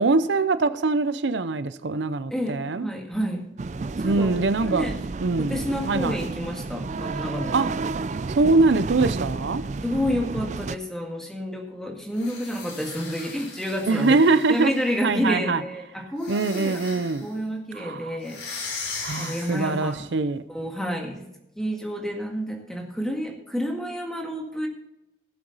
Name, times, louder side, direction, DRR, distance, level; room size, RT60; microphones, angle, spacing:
voice 1, 0.0-2.9 4.0-4.9 5.2-5.6 5.8-6.2 7.5-7.7 8.3-9.6 13.9-14.7 15.0-15.6 16.3-17.3 17.7-18.1 19.0-20.4, right 3 dB, 85° right, 13 dB, 0.6 m, -23 dB
voice 2, 2.3-3.5 4.0-5.0 5.4-7.7 9.8-18.4 18.8-20.0 20.5-21.2 21.6-24.7, equal, 5° left, 1 dB, 1.8 m, -30 dB
sound 1, 3.6-10.8, right 3 dB, 40° right, 0.4 m, -31 dB
sound 2, 12.1-15.1 16.2-17.3 18.2-19.9, left 4 dB, 80° left, 3.7 m, -38 dB
16.5 x 7.8 x 4.1 m, 0.89 s
head